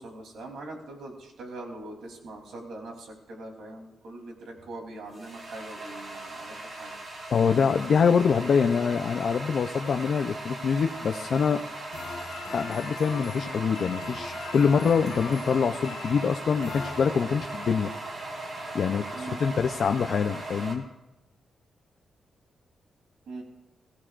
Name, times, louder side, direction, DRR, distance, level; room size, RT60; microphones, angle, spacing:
voice 1, 0.0-6.9 19.1-19.4 23.3-23.4, right 2 dB, 85° right, 2 dB, 3.2 m, -42 dB
sound 1, 4.6-20.8, right 2 dB, 40° right, 2.8 m, -38 dB
voice 2, 7.3-11.6 12.5-17.9 18.7-20.9, left 6 dB, 45° left, 5 dB, 0.5 m, -25 dB
sound 2, 11.9-17.6, left 6 dB, 70° left, 1.1 m, -42 dB
22.0 x 16.0 x 2.5 m, 0.99 s
wide cardioid pair, 180°, 0 cm